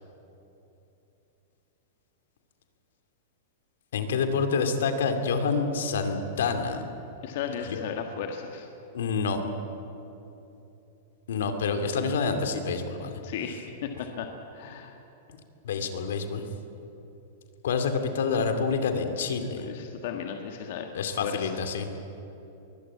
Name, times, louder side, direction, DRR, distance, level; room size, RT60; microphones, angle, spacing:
voice 1, 3.9-6.8 7.7-7.8 8.9-9.4 11.3-13.2 15.6-16.4 17.6-19.7 20.9-22.0, left 5 dB, 85° left, 6 dB, 2.5 m, -27 dB
voice 2, 7.2-8.7 13.2-14.9 19.5-21.6, left 7 dB, 55° left, 4 dB, 1.6 m, -35 dB
22.5 x 17.0 x 8.6 m, 2.9 s
supercardioid pair, 165°, 0 cm